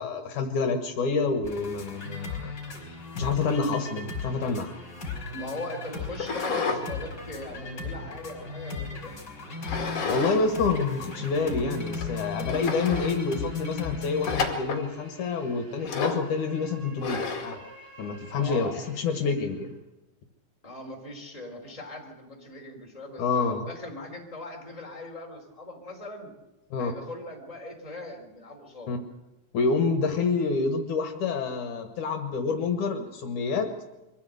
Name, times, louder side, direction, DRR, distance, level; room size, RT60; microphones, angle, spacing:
voice 1, 0.0-2.5 3.1-4.7 9.8-17.6 18.0-19.7 23.2-23.7 26.7-26.9 28.9-29.0 29.5-33.7, left 4 dB, 70° left, 5 dB, 2.9 m, -28 dB
sound 1, 1.4-14.4, left 4 dB, 30° left, 5.0 m, -36 dB
voice 2, 5.3-9.1 11.0-11.1 18.3-18.7 20.6-26.3 26.8-28.9, left 2 dB, 10° left, 0 dB, 4.0 m, -40 dB
sound 2, 6.1-6.8 7.2-8.6 9.6-10.4 10.7-10.8 11.5-11.6 12.0-12.1 12.5-13.2 14.2-14.9 15.8-16.3 17.0-17.6, left 4 dB, 50° left, 3.3 m, -31 dB
sound 3, 9.9-19.8, right 1 dB, 30° right, 7.4 m, -51 dB
24.0 x 15.5 x 8.0 m, 1.0 s
omnidirectional pair, 3.7 m